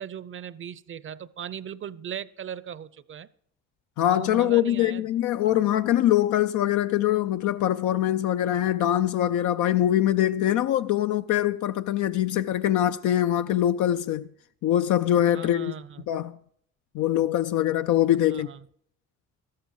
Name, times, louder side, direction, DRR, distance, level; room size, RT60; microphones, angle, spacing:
voice 1, 0.0-3.3 4.1-5.0 5.4-5.7 15.3-16.1 18.3-18.6, right 9 dB, 40° right, 0.6 m, -38 dB
voice 2, 4.0-14.3 14.6-15.8 16.1-16.4 16.9-18.5, left 12 dB, 75° left, 0.5 m, -23 dB
13.5 x 13.0 x 4.7 m
cardioid pair, 90°, 30 cm